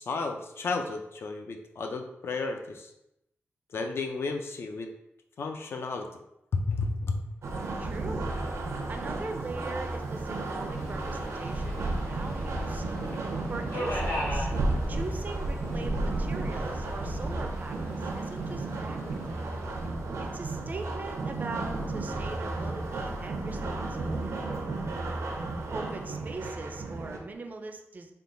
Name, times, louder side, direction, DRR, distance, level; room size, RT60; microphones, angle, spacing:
voice 1, 0.0-2.9 3.7-4.9 5.4-6.1 6.5-7.2, left 3 dB, 60° left, 4 dB, 0.4 m, -32 dB
sound 1, 7.4-27.2, right 2 dB, 90° right, 0.6 m, -33 dB
voice 2, 7.8-8.4 8.9-12.8 13.5-14.5 14.9-19.4 20.3-24.5 25.7-28.1, right 3 dB, 35° right, 4 dB, 0.4 m, -41 dB
Subway metro underground, 10.7-19.9, equal, 85° left, 0.9 m, -40 dB
sound 2, 21.6-27.3, left 1 dB, 40° left, 1.4 m, -44 dB
3.7 x 2.3 x 3.8 m, 0.85 s
wide cardioid pair, 160°, 5 cm